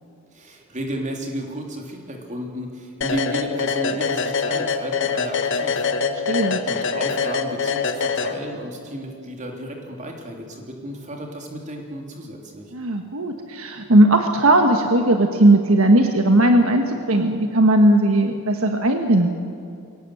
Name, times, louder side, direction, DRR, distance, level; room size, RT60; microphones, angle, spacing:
voice 1, 0.3-6.3 6.6-12.7, equal, 35° right, 1 dB, 3.4 m, -33 dB
sound 1, 3.0-8.8, left 5 dB, 55° left, 1.3 m, -24 dB
voice 2, 6.3-6.6 12.7-19.3, right 1 dB, 70° right, 5 dB, 1.4 m, -17 dB
22.5 x 18.0 x 7.9 m, 2.5 s
head